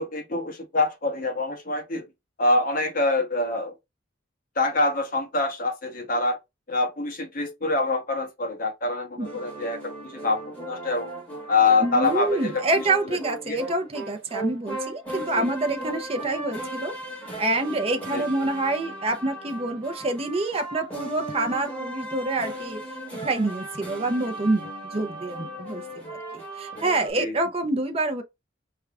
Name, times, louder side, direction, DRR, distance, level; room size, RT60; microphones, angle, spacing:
voice 1, 0.0-2.1 2.4-3.7 4.6-6.4 6.7-11.1 11.5-12.6 13.5-13.6 15.3-15.5 18.1-18.2 27.2-27.3, left 3 dB, 50° left, 1.0 m, -25 dB
sound 1, 9.2-27.1, right 1 dB, 10° left, 2.4 m, -37 dB
voice 2, 11.8-16.9 17.4-22.8 23.2-28.2, right 2 dB, 30° right, 0.7 m, -27 dB
4.6 x 3.3 x 2.4 m
head